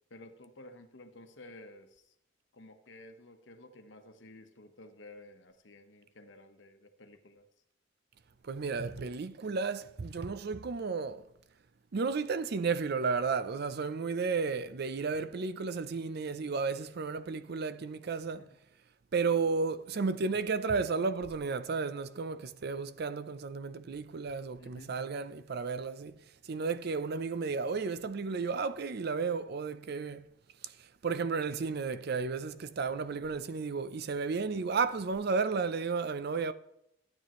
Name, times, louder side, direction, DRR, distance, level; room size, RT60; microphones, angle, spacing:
voice 1, 0.1-2.1 2.5-7.5 18.4-18.5 24.6-25.0, left 2 dB, 65° left, 1.1 m, -53 dB
voice 2, 8.4-11.2 11.9-18.4 19.1-26.2 26.4-30.3 31.0-36.5, right 4 dB, 55° right, 0.5 m, -33 dB
12.5 x 8.6 x 3.1 m
head